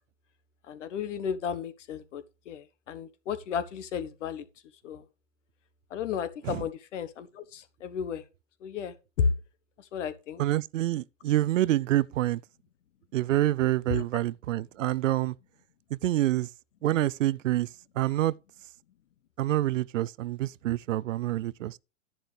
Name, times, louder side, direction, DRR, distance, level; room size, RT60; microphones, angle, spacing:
voice 1, 0.7-4.4 4.8-5.0 5.9-8.2 8.6-9.3 9.8-10.4 13.9-14.0, left 6 dB, 75° left, 1.4 m, -33 dB
voice 2, 10.4-12.4 13.1-15.3 15.9-16.5 16.8-17.7 18.0-18.3 19.4-21.8, right 14 dB, 85° right, 0.5 m, -27 dB
10.5 x 10.0 x 3.3 m
hypercardioid pair, 125°, 37 cm